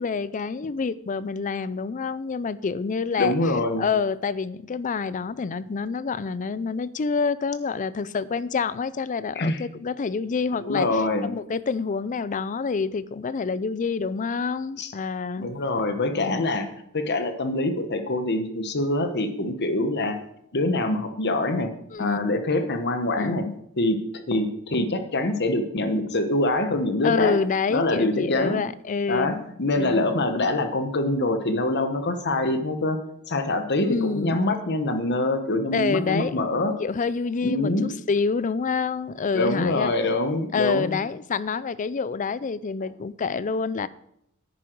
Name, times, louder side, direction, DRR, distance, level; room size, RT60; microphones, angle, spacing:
voice 1, 0.0-3.3 3.8-15.5 16.2-16.5 21.9-22.3 23.2-23.6 27.0-29.4 29.7-30.0 33.8-34.4 35.7-36.5 36.8-39.9 40.5-43.9, left 5 dB, 35° left, 18 dB, 0.4 m, -27 dB
voice 2, 3.2-3.9 9.3-9.6 10.6-11.3 14.8-14.9 15.4-16.7 16.9-20.2 20.5-21.7 22.0-23.4 23.8-27.4 27.7-28.6 29.1-33.0 33.3-36.7 37.4-37.9 39.3-41.0, left 2 dB, 50° left, 8 dB, 1.2 m, -25 dB
10.0 x 9.7 x 4.6 m, 0.75 s
head